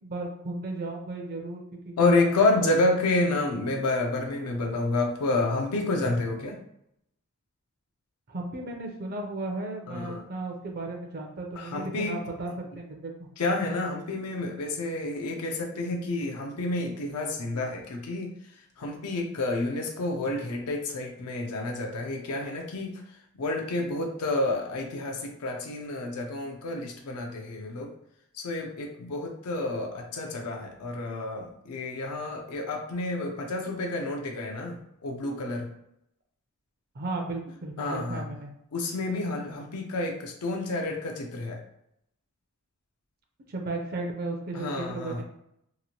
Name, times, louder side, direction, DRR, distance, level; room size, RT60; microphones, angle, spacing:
voice 1, 0.0-2.3 2.6-2.9 8.3-13.3 36.9-38.5 43.5-45.2, right 2 dB, 45° right, 2 dB, 0.5 m, -35 dB
voice 2, 2.0-6.6 9.9-10.2 11.6-12.2 13.4-18.3 18.8-23.0 23.4-27.9 28.3-34.8 35.0-35.7 37.8-38.2 38.7-41.6 44.5-45.2, left 2 dB, 80° left, 2 dB, 0.5 m, -29 dB
2.9 x 2.5 x 2.8 m, 0.78 s
head